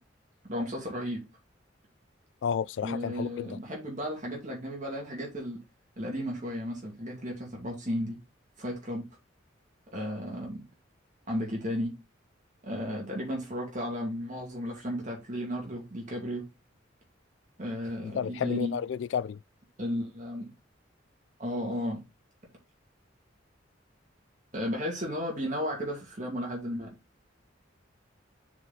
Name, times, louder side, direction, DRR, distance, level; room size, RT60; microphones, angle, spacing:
voice 1, 0.4-1.2 2.8-5.6 6.0-8.2 8.6-9.1 9.9-10.6 11.3-11.9 12.6-16.5 17.6-18.7 19.8-20.5 21.4-22.0 24.5-26.9, equal, 40° right, 2.2 m, -34 dB
voice 2, 2.4-3.6 18.0-19.4, left 7 dB, 65° left, 0.3 m, -32 dB
7.1 x 4.2 x 4.1 m
head